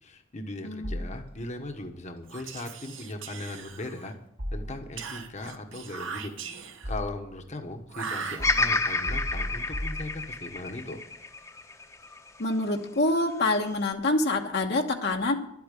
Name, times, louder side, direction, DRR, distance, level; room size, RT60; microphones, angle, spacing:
voice 1, 0.0-4.1 4.5-6.3 6.8-11.0, left 2 dB, 35° left, 5 dB, 1.2 m, -38 dB
voice 2, 0.6-1.0 12.4-15.3, left 2 dB, 60° left, 2 dB, 1.3 m, -26 dB
sound 1, 0.8-1.7 4.4-5.3 6.2-7.5 8.4-10.6, equal, 55° right, 2.6 m, -36 dB
Whispering, 2.2-4.2 5.0-7.0 7.9-8.9, right 5 dB, 75° right, 1.3 m, -39 dB
Bird vocalization bird call bird song, 8.4-12.6 13.2-13.9, left 3 dB, 15° left, 1.0 m, -30 dB
12.0 x 8.6 x 8.3 m, 0.75 s
head